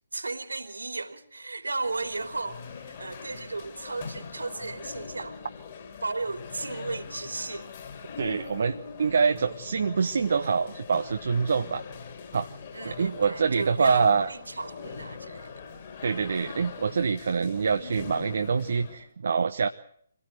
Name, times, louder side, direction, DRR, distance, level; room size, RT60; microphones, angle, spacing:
voice 1, 0.1-2.6 3.0-5.4 6.0-7.7 12.7-15.6, right 3 dB, 75° right, 3.2 m, -35 dB
sound 1, 1.7-19.1, left 6 dB, 40° left, 5.5 m, -42 dB
voice 2, 8.2-11.8 12.3-12.5 12.8-14.3 16.0-19.7, right 5 dB, 55° right, 1.1 m, -25 dB
25.0 x 18.0 x 8.0 m
figure-of-eight pair, 140°, 0 cm